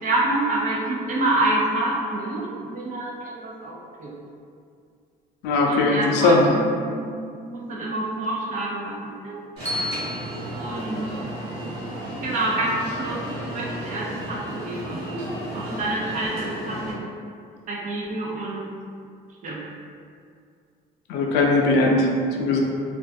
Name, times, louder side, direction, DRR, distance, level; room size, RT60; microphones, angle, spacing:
voice 1, 0.0-4.1 5.7-7.1 7.4-9.4 10.6-11.1 12.2-15.1 15.5-17.1 17.7-18.6 19.4-19.6, right 2 dB, 50° right, -3 dB, 0.6 m, -27 dB
voice 2, 5.4-6.4 21.1-22.1 22.4-22.6, left 3 dB, 85° left, 0 dB, 0.4 m, -19 dB
Alarm, 9.6-16.9, right 1 dB, 75° right, 1.0 m, -33 dB
Bell, 9.7-11.8, left 1 dB, 5° left, 0.5 m, -34 dB
2.4 x 2.2 x 2.4 m, 2.3 s
cardioid pair, 110°, 17 cm